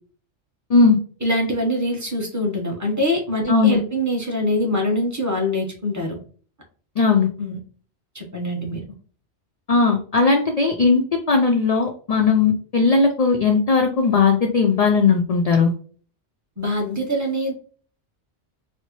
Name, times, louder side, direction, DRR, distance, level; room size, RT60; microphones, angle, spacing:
voice 1, 1.2-6.2 7.4-7.6 8.1-8.8 16.6-17.5, left 1 dB, 15° right, 0 dB, 0.9 m, -24 dB
voice 2, 3.5-3.8 7.0-7.3 9.7-11.0 11.3-15.7, left 4 dB, 75° left, 4 dB, 0.3 m, -17 dB
4.1 x 2.1 x 3.0 m, 0.43 s
omnidirectional pair, 1.2 m